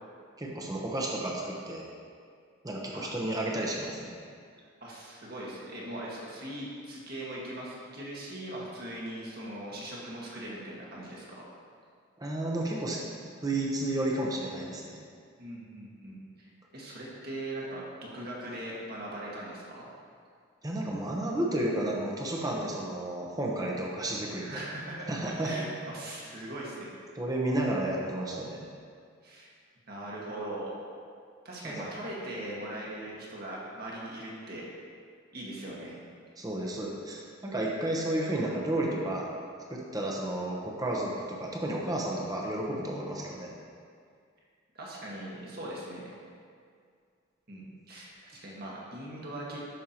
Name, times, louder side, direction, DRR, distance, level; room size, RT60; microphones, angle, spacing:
voice 1, 0.4-1.8 2.6-4.1 12.2-13.0 13.4-15.0 20.6-24.6 25.1-25.5 27.2-28.6 31.6-31.8 36.4-39.3 39.7-43.5, right 1 dB, 20° right, -2 dB, 0.9 m, -32 dB
voice 2, 4.8-11.2 15.4-19.9 24.4-26.9 29.2-29.5 29.9-30.8 31.4-34.6 35.3-36.0 44.7-46.1 47.5-49.6, right 1 dB, 50° right, -5 dB, 1.6 m, -40 dB
12.5 x 5.5 x 2.9 m, 2.2 s
head